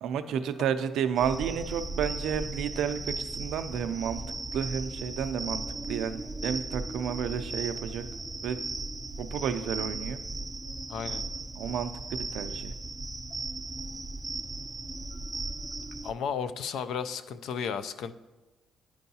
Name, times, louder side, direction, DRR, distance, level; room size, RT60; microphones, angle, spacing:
voice 1, 0.0-4.2 4.5-8.0 8.4-8.6 9.2-10.2 11.6-12.7, right 8 dB, 85° right, 9 dB, 0.4 m, -31 dB
sound 1, 1.2-16.1, right 2 dB, 15° right, 0.4 m, -37 dB
voice 2, 10.9-11.2 16.0-18.1, left 7 dB, 80° left, 12 dB, 0.3 m, -33 dB
10.0 x 4.5 x 2.8 m, 1.2 s
cardioid pair, 90°, 0 cm